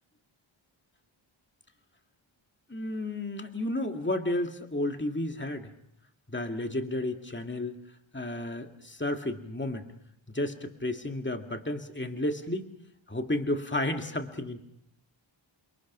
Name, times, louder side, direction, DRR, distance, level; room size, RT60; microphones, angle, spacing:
voice 1, 2.7-5.7 6.3-7.8 8.1-9.9 10.3-12.7 13.1-14.6, left 1 dB, 20° left, 5 dB, 2.3 m, -32 dB
29.0 x 23.5 x 6.2 m, 0.74 s
wide cardioid pair, 55°, 50 cm